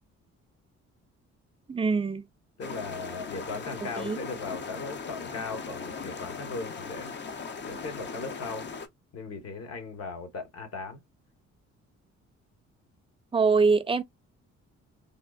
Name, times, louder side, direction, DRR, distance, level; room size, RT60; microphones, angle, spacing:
voice 1, 1.7-2.2 3.8-4.2 13.3-14.0, right 4 dB, 20° right, 0.5 m, -24 dB
voice 2, 2.6-7.1 7.7-8.7 9.1-11.0, left 3 dB, 55° left, 1.3 m, -38 dB
sound 1, 2.6-8.9, left 5 dB, 35° left, 0.6 m, -39 dB
3.5 x 2.4 x 2.4 m
cardioid pair, 90°, 30 cm